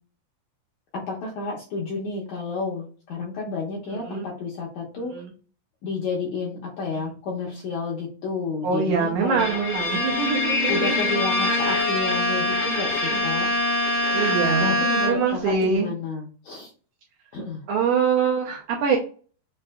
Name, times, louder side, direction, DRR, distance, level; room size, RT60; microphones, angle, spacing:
voice 1, 0.9-5.1 5.8-9.6 10.7-13.5 14.6-16.7 17.3-17.6, left 3 dB, 75° left, -3 dB, 1.7 m, -30 dB
voice 2, 3.9-4.3 5.1-5.3 6.9-7.1 8.6-11.1 13.0-13.2 14.1-14.8 15.1-15.9 17.7-19.0, right 5 dB, 75° right, -1 dB, 1.9 m, -24 dB
Bowed string instrument, 9.4-15.4, left 1 dB, 50° left, 0.9 m, -24 dB
5.7 x 2.6 x 2.3 m, 0.39 s
omnidirectional pair, 4.1 m